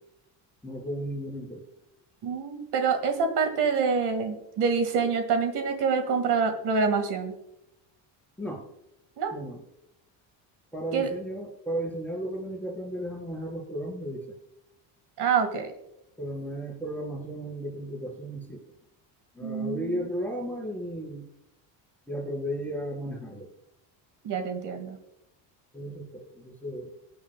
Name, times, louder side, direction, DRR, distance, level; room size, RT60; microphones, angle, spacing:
voice 1, 0.6-1.6 8.4-8.7 9.3-9.6 10.7-14.3 16.2-18.6 19.3-21.3 22.1-23.5 25.7-26.9, equal, 5° left, -1 dB, 3.8 m, -34 dB
voice 2, 2.2-7.4 9.2-9.3 10.9-11.1 15.2-15.7 19.4-19.9 24.2-25.0, right 5 dB, 55° right, 7 dB, 1.8 m, -26 dB
23.5 x 9.6 x 2.2 m, 0.85 s
cardioid pair, 155°, 47 cm